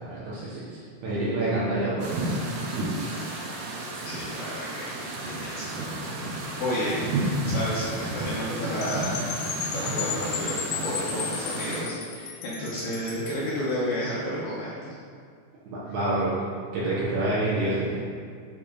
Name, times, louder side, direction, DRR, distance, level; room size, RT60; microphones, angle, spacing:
voice 1, 0.0-2.6 2.9-3.0 15.6-16.3 16.7-18.0, right 2 dB, 70° right, -8 dB, 2.8 m, -28 dB
sound 1, 2.0-11.8, right 2 dB, 85° right, 3.5 m, -32 dB
voice 2, 4.0-4.9 5.3-6.3 6.6-9.3 9.7-14.9, equal, 70° left, -8 dB, 2.5 m, -31 dB
Percussion / Wind chime, 8.8-13.5, left 7 dB, 90° left, 3.1 m, -34 dB
9.7 x 3.7 x 5.0 m, 2.1 s
omnidirectional pair, 5.5 m